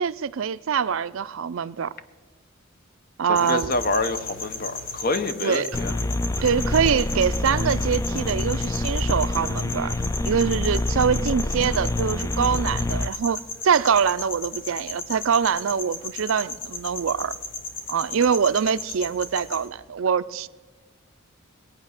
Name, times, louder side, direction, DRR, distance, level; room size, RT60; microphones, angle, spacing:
voice 1, 0.0-1.9 3.2-3.7 5.4-5.8 6.4-9.9 10.2-17.3 17.9-20.5, right 7 dB, 70° right, 0.4 m, -24 dB
voice 2, 3.3-5.9, left 2 dB, 45° left, 0.8 m, -27 dB
sound 1, 3.4-19.7, left 3 dB, 60° left, 1.5 m, -36 dB
sound 2, 5.7-13.1, left 2 dB, 15° left, 0.3 m, -26 dB
19.5 x 8.9 x 6.5 m
head